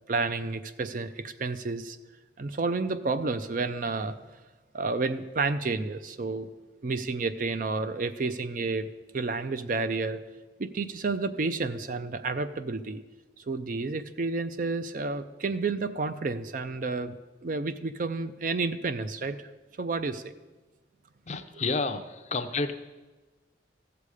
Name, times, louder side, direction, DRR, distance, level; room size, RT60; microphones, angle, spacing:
voice 1, 0.1-2.0 2.4-4.2 4.7-6.5 6.8-8.9 9.1-10.2 10.6-13.0 13.4-19.4 19.8-20.3, right 3 dB, 45° right, 11 dB, 0.5 m, -30 dB
voice 2, 21.3-22.7, left 3 dB, 40° left, 9 dB, 0.6 m, -30 dB
14.5 x 6.9 x 4.9 m, 1.2 s
head